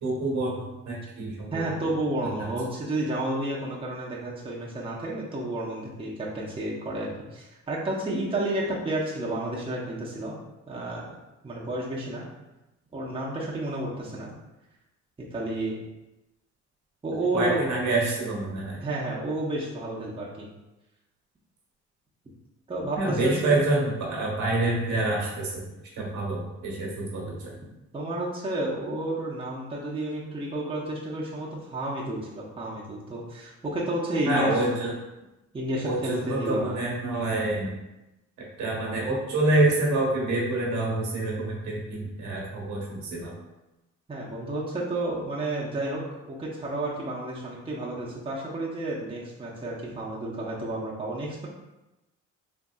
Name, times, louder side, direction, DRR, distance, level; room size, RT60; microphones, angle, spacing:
voice 1, 0.0-1.6 2.4-2.5 17.3-18.8 23.0-25.7 25.9-27.6 34.3-34.9 35.8-37.8 38.4-43.3, right 2 dB, 70° right, -3 dB, 1.1 m, -27 dB
voice 2, 1.5-10.4 10.7-11.0 11.4-12.3 12.9-14.3 15.3-15.7 17.0-17.6 18.8-20.5 22.7-23.6 27.9-34.6 35.5-36.8 44.1-51.5, right 1 dB, 20° right, -5 dB, 0.7 m, -31 dB
3.8 x 2.6 x 2.3 m, 0.99 s
cardioid pair, 90°, 30 cm